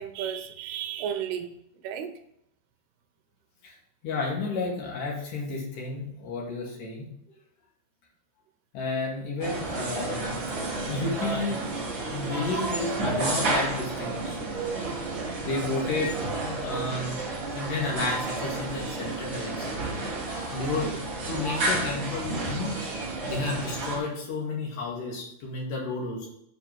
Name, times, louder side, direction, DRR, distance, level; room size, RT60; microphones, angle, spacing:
voice 1, 0.0-1.5 1.8-2.1 20.6-21.0, right 9 dB, 75° right, 6 dB, 2.5 m, -33 dB
voice 2, 4.0-7.1 8.7-10.4 10.7-11.7 12.1-14.5 15.4-16.2 16.6-17.2 17.5-19.8 20.5-22.8 23.2-26.3, left 3 dB, 55° left, -2 dB, 3.1 m, -32 dB
sound 1, 9.4-24.0, right 2 dB, 55° right, 1.2 m, -31 dB
7.4 x 4.6 x 6.1 m, 0.73 s
omnidirectional pair, 5.3 m